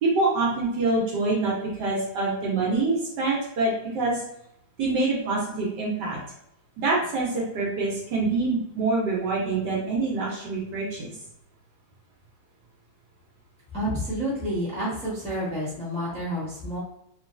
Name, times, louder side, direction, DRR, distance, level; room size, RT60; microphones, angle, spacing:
voice 1, 0.0-4.2 4.8-6.2 6.8-11.1, right 3 dB, 65° right, -4 dB, 1.3 m, -25 dB
voice 2, 13.7-16.8, equal, 5° left, -8 dB, 0.6 m, -29 dB
3.0 x 2.8 x 2.5 m, 0.78 s
omnidirectional pair, 2.3 m